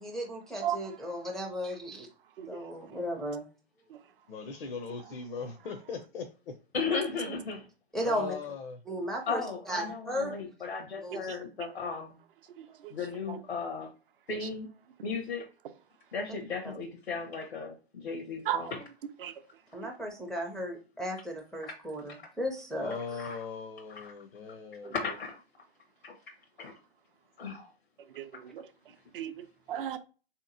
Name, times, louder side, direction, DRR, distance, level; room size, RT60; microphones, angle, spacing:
voice 1, 0.0-2.1 2.5-3.4 7.9-8.3 8.9-10.3 11.0-11.2 19.7-23.0, equal, ahead, 0.4 m, -35 dB
voice 2, 0.6-1.2 2.4-2.9 3.9-4.0 5.0-5.1 7.3-7.4 11.1-11.4 12.5-12.9 13.3-13.4 14.4-14.5 18.4-18.7 19.2-19.4 24.8-24.9 28.1-30.0, right 11 dB, 60° right, 0.5 m, -37 dB
voice 3, 4.3-6.5 7.1-7.2 8.0-8.8 22.8-24.9, left 5 dB, 65° left, 0.6 m, -39 dB
voice 4, 6.7-7.7 9.3-12.2 12.9-13.9 14.3-14.7 15.0-15.5 16.1-18.7 21.6-21.7 23.1-23.4 23.9-24.1 24.9-25.4 26.0-26.2 26.6-26.7 27.4-27.7, left 4 dB, 90° left, 0.9 m, -36 dB
3.7 x 2.8 x 2.5 m
figure-of-eight pair, 110°, 31 cm